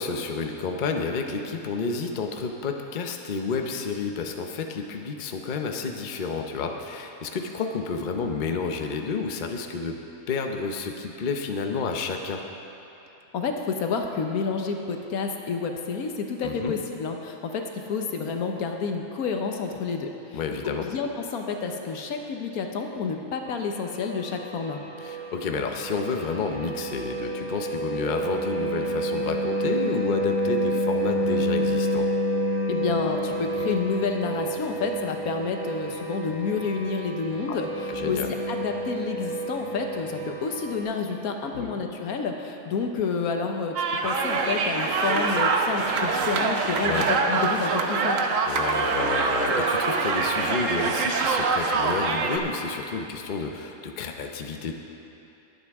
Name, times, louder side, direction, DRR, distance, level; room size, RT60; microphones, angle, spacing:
voice 1, 0.0-10.0 10.3-12.4 16.4-16.7 20.3-20.9 25.0-32.1 37.5-37.6 37.9-38.3 41.5-41.7 46.8-47.1 48.5-54.7, left 4 dB, 45° left, 3 dB, 0.7 m, -30 dB
voice 2, 13.3-24.8 32.7-43.8 44.0-48.2, left 5 dB, 80° left, 4 dB, 1.4 m, -29 dB
sound 1, 23.5-40.8, right 1 dB, 90° right, 2.8 m, -29 dB
sound 2, 43.8-52.4, right 4 dB, 65° right, 1.1 m, -24 dB
20.5 x 8.0 x 3.5 m, 2.9 s
omnidirectional pair, 1.5 m